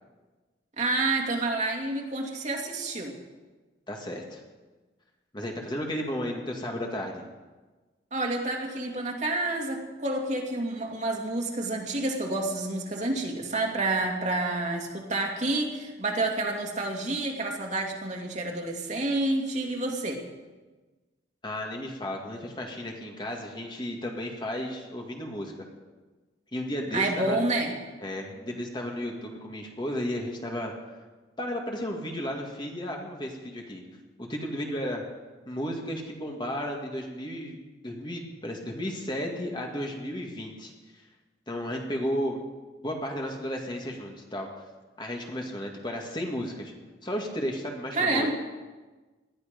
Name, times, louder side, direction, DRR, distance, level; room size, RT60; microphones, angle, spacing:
voice 1, 0.8-3.2 8.1-20.2 26.9-27.7 47.9-48.3, right 2 dB, 40° right, 0 dB, 2.3 m, -29 dB
voice 2, 3.9-4.4 5.3-7.2 21.4-25.7 26.5-27.4 28.0-30.7 31.4-33.8 34.3-35.0 35.5-37.6 37.8-40.7 41.5-42.4 42.8-44.5 45.0-46.7 47.0-48.3, equal, 25° left, 1 dB, 2.0 m, -33 dB
19.5 x 13.0 x 5.2 m, 1.3 s
head